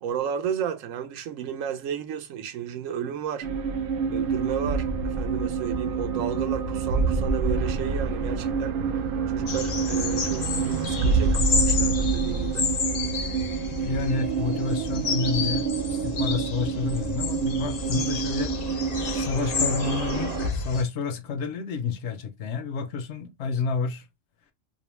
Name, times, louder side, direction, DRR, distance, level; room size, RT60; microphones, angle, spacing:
voice 1, 0.0-3.5 4.1-8.7 9.3-12.7, right 8 dB, 80° right, 0.9 m, -33 dB
sound 1, 3.4-20.5, right 5 dB, 65° right, 0.6 m, -27 dB
sound 2, 9.5-20.8, left 6 dB, 85° left, 0.3 m, -31 dB
voice 2, 13.7-18.5 19.1-24.0, left 5 dB, 70° left, 0.8 m, -30 dB
2.7 x 2.1 x 3.0 m
omnidirectional pair, 1.3 m